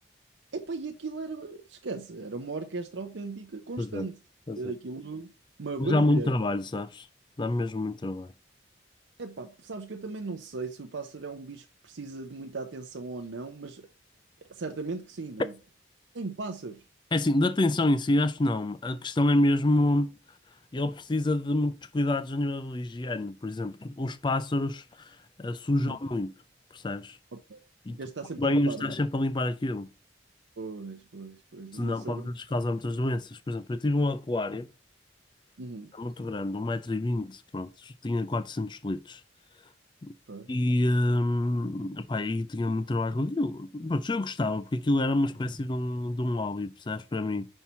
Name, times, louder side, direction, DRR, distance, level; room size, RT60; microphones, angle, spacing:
voice 1, 0.5-4.2 4.6-5.3 5.6-6.3 9.2-13.9 14.5-15.5 16.1-16.8 25.7-26.0 27.3-27.6 27.9-28.9 30.6-32.3 35.6-35.9 40.3-40.5, right 3 dB, 80° right, 0.7 m, -37 dB
voice 2, 5.8-7.1 7.4-8.3 17.1-20.1 20.7-26.3 26.7-27.2 27.9-28.0 28.4-29.9 31.7-34.7 36.0-39.2 40.0-40.1 40.5-47.5, left 1 dB, 25° left, 0.4 m, -28 dB
5.5 x 4.5 x 5.5 m
head